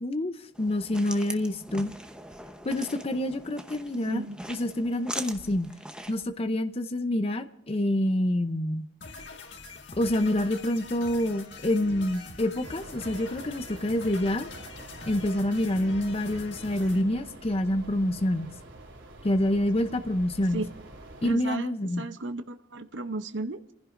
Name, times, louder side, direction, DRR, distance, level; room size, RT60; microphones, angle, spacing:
voice 1, 0.0-1.9 2.6-5.7 6.1-8.9 10.0-14.5 15.1-18.5 19.2-20.6 21.2-22.0, left 1 dB, 30° left, 0.7 m, -27 dB
sound 1, 0.5-6.2, right 1 dB, 5° right, 0.9 m, -41 dB
voice 2, 4.0-4.5 20.5-20.7 21.2-23.7, right 2 dB, 70° right, 0.8 m, -35 dB
sound 2, 9.0-17.0, left 4 dB, 65° left, 1.8 m, -44 dB
sound 3, 12.6-21.3, right 1 dB, 90° right, 3.6 m, -46 dB
30.0 x 15.5 x 2.6 m
head